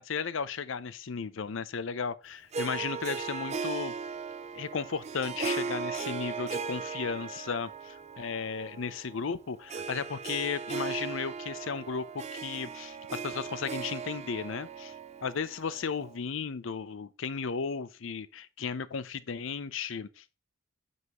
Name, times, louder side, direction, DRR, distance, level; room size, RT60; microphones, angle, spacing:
voice 1, 0.0-3.9 4.5-14.9 15.2-20.4, left 5 dB, 70° left, 0.6 m, -35 dB
Harp, 2.5-16.2, right 5 dB, 35° right, 0.5 m, -38 dB
9.5 x 5.4 x 3.0 m
head